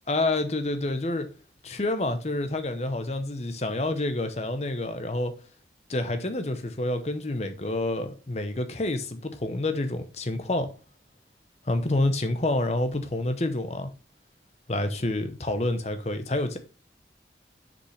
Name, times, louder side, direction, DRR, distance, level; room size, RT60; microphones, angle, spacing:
voice 1, 0.1-1.3 1.6-5.3 5.9-10.7 11.7-13.9 14.7-16.6, left 2 dB, 35° left, 0.7 m, -28 dB
6.6 x 5.2 x 3.2 m
head